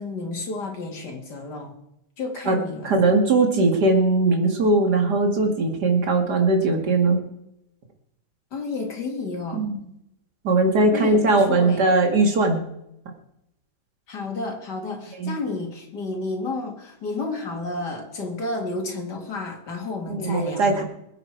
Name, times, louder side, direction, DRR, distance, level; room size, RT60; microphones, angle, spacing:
voice 1, 0.0-1.8 2.2-3.0 8.5-9.7 10.9-11.9 14.1-20.8, left 3 dB, 75° left, 2 dB, 3.0 m, -31 dB
voice 2, 2.8-7.2 9.5-9.8 10.4-12.6 15.2-15.3 20.1-20.8, right 2 dB, 70° right, 3 dB, 2.7 m, -20 dB
21.5 x 9.4 x 4.7 m, 0.82 s
omnidirectional pair, 1.8 m